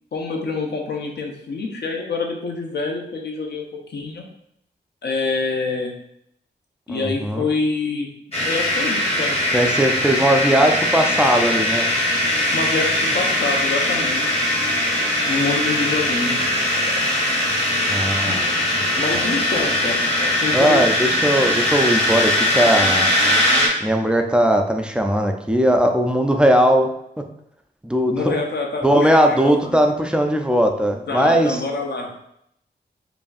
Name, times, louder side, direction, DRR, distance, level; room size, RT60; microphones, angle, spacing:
voice 1, 0.1-3.6 3.9-4.2 5.0-5.9 6.9-8.1 8.4-9.6 12.5-14.4 15.2-17.0 18.2-18.4 18.7-20.8 28.1-29.8 31.1-32.1, left 3 dB, 70° left, 1 dB, 0.8 m, -26 dB
voice 2, 6.9-7.5 9.5-11.9 17.9-18.9 19.1-19.6 20.5-23.1 23.8-26.9 27.8-28.3 28.8-31.6, equal, 5° right, 4 dB, 0.3 m, -19 dB
sound 1, 8.3-23.7, left 1 dB, 35° left, 1.2 m, -20 dB
5.0 x 2.6 x 2.4 m, 0.74 s
wide cardioid pair, 130°, 18 cm